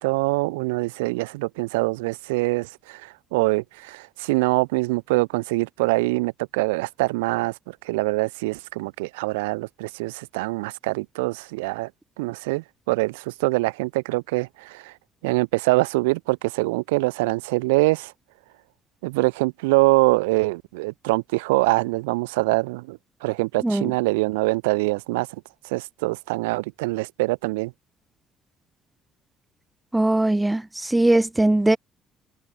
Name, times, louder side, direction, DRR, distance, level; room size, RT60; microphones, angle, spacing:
voice 1, 0.0-7.5 7.8-11.9 12.2-14.9 15.2-18.1 19.0-25.3 25.6-27.7, right 23 dB, 70° right, 0.3 m, -24 dB
voice 2, 29.9-31.8, right 1 dB, 10° right, 0.9 m, -20 dB
figure-of-eight pair, 45°, 0 cm